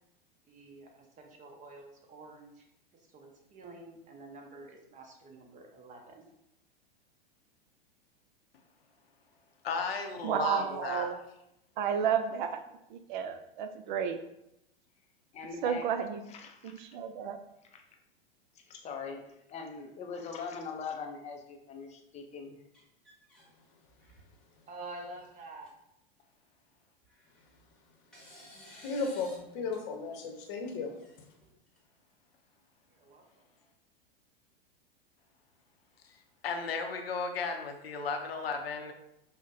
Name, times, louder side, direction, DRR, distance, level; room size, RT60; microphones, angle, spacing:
voice 1, 0.5-2.7 2.9-6.3 24.7-25.7 32.9-33.4, right 2 dB, 25° right, 1 dB, 0.8 m, -49 dB
voice 2, 9.6-11.1 36.4-38.9, left 4 dB, 85° left, 4 dB, 0.6 m, -34 dB
voice 3, 10.2-11.2 11.8-12.6 12.9-14.2 15.6-16.2 16.8-17.4, right 8 dB, 55° right, 8 dB, 0.4 m, -31 dB
voice 4, 15.3-15.9 16.3-16.7 17.7-17.8 18.5-22.6, left 5 dB, 25° left, 3 dB, 0.5 m, -42 dB
sound 1, 22.7-23.5 23.9-24.4 25.2-25.3 25.6-25.7 27.0-27.6 28.1-29.4 29.7-29.8 30.9-31.8, left 1 dB, 5° left, 1.2 m, -55 dB
voice 5, 28.8-30.9, left 4 dB, 45° left, 2 dB, 0.8 m, -35 dB
5.3 x 2.1 x 2.6 m, 0.82 s
hypercardioid pair, 105°, 30 cm